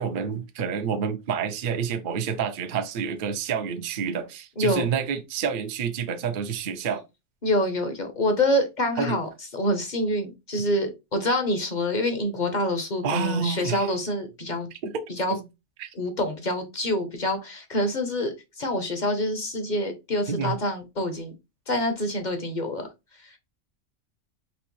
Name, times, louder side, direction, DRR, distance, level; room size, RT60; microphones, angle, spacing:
voice 1, 0.0-7.0 9.0-9.2 13.0-13.9 14.8-15.0 15.3-15.4 15.8-15.9 20.3-20.6, right 6 dB, 50° right, 0.7 m, -28 dB
voice 2, 4.6-4.9 7.4-14.7 15.2-15.4 15.9-21.3 21.7-22.9 23.2-23.4, left 1 dB, 40° left, 0.9 m, -26 dB
4.3 x 3.0 x 3.1 m
omnidirectional pair, 1.4 m